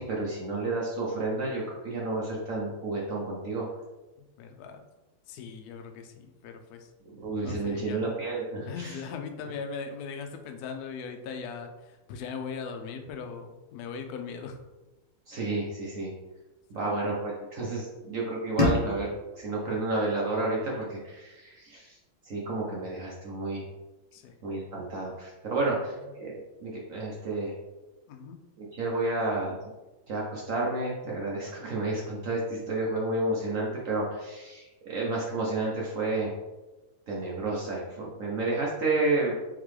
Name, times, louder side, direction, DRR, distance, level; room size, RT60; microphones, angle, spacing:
voice 1, 0.0-3.6 7.1-9.0 15.3-16.1 16.7-19.1 19.4-22.0 22.3-23.6 24.4-27.5 28.6-29.5 30.1-36.3 37.1-39.3, right 2 dB, 65° right, -4 dB, 0.8 m, -31 dB
voice 2, 4.4-4.8 5.3-6.9 7.4-8.1 8.7-14.6 16.7-17.1 24.1-24.3 25.7-25.8 28.1-28.4, left 5 dB, 80° left, 5 dB, 0.8 m, -39 dB
sound 1, 18.6-21.5, left 2 dB, 30° left, 0.9 m, -32 dB
3.9 x 3.7 x 3.2 m, 1.1 s
omnidirectional pair, 2.3 m